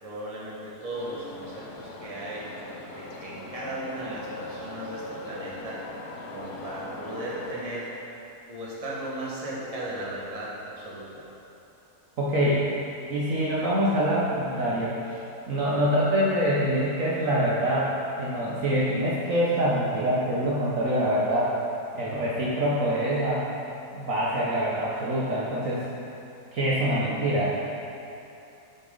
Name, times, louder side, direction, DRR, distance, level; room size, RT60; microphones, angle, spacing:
voice 1, 0.0-2.5 2.9-5.8 6.3-7.9 8.5-11.2, right 1 dB, 25° right, -7 dB, 1.5 m, -36 dB
sound 1, 0.9-7.6, left 2 dB, 75° left, 1.4 m, -40 dB
voice 2, 12.2-12.6 13.1-15.2 15.5-21.5 21.9-23.4 23.9-25.9 26.5-27.6, equal, 60° right, -6 dB, 1.3 m, -25 dB
8.4 x 7.1 x 3.9 m, 2.8 s
omnidirectional pair, 1.7 m